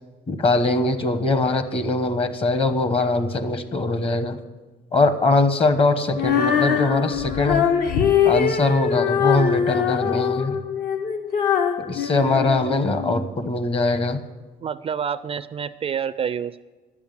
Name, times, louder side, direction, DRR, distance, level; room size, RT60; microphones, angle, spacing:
voice 1, 0.3-4.4 4.9-7.7 8.2-10.6 11.8-14.2, left 2 dB, 35° left, 10 dB, 1.1 m, -22 dB
Female singing, 6.1-13.2, left 8 dB, 60° left, 1.1 m, -22 dB
voice 2, 14.6-16.6, right 7 dB, 35° right, 14 dB, 0.4 m, -28 dB
10.5 x 7.4 x 9.1 m, 1.2 s
cardioid pair, 110°, 17 cm